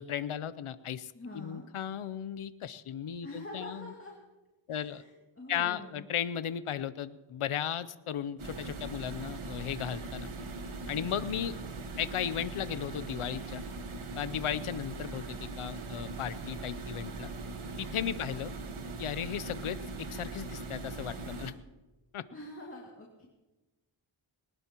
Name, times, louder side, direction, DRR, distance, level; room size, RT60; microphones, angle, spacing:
voice 1, 0.0-3.9 4.7-5.0 5.5-10.3 10.9-11.6 12.0-13.6 14.2-17.3 17.8-18.5 19.0-21.5 22.1-22.2, left 9 dB, 90° left, 14 dB, 0.7 m, -36 dB
voice 2, 1.1-1.7 3.2-4.2 4.7-6.1 18.0-18.3 22.3-23.3, left 1 dB, 25° left, -3 dB, 2.4 m, -46 dB
sound 1, 8.4-21.5, right 3 dB, 80° right, 1.5 m, -40 dB
21.5 x 19.0 x 3.0 m, 1.1 s
wide cardioid pair, 95°, 49 cm